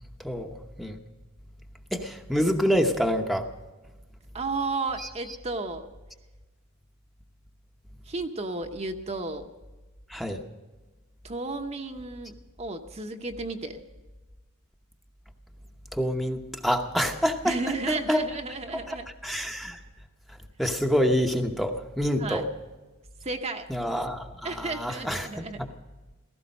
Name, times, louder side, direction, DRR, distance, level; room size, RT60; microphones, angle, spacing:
voice 1, 0.2-1.0 1.9-3.5 5.0-5.1 10.1-10.4 15.9-18.2 18.9-19.0 19.2-19.8 20.6-22.4 23.7-25.7, equal, ahead, 3 dB, 0.9 m, -27 dB
voice 2, 4.3-5.9 8.1-9.5 11.2-13.8 17.4-19.1 22.2-22.5 23.2-23.7 24.4-25.6, right 3 dB, 30° right, 5 dB, 0.9 m, -33 dB
16.5 x 15.0 x 5.3 m, 1.2 s
head